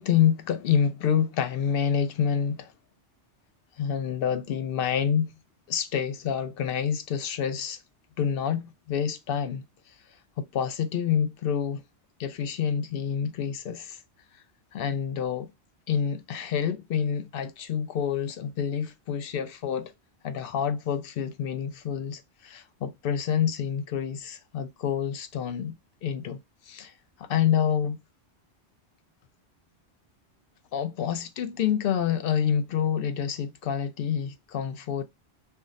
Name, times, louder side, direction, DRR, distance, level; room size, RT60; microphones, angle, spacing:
voice 1, 0.0-2.7 3.8-5.3 5.7-7.8 8.2-9.6 10.4-11.8 12.2-14.0 14.7-15.5 15.9-19.9 20.2-25.8 26.0-26.4 26.7-26.9 27.2-28.0 30.7-35.0, left 8 dB, 65° left, 0.7 m, -27 dB
5.5 x 2.0 x 2.5 m
omnidirectional pair, 1.1 m